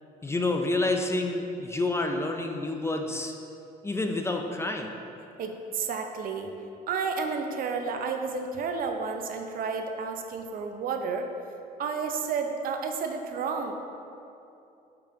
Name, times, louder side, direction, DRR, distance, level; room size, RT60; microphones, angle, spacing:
voice 1, 0.2-3.3 3.8-5.0, left 2 dB, 15° left, 4 dB, 0.4 m, -28 dB
voice 2, 5.4-6.5 6.9-11.3 11.8-13.7, right 5 dB, 60° right, 5 dB, 0.6 m, -31 dB
5.8 x 5.0 x 3.8 m, 2.8 s
cardioid pair, 110°, 17 cm